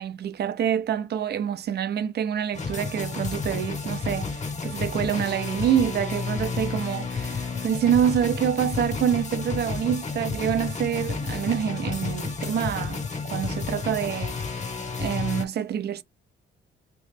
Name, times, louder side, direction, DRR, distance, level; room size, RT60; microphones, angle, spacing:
voice 1, 0.0-13.0 13.3-14.4 15.0-16.0, right 9 dB, 55° right, 0.6 m, -26 dB
sound 1, 2.5-15.4, left 4 dB, 35° left, 1.0 m, -31 dB
3.1 x 3.0 x 3.2 m
cardioid pair, 90°, 20 cm